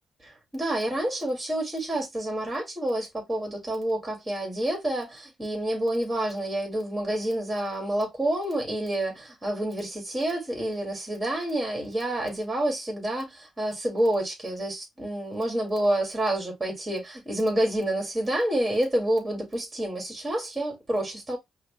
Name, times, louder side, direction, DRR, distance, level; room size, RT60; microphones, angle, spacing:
voice 1, 0.2-21.4, right 1 dB, 25° right, 2.1 m, -28 dB
5.7 x 2.3 x 2.3 m
supercardioid pair, 55°, 0 cm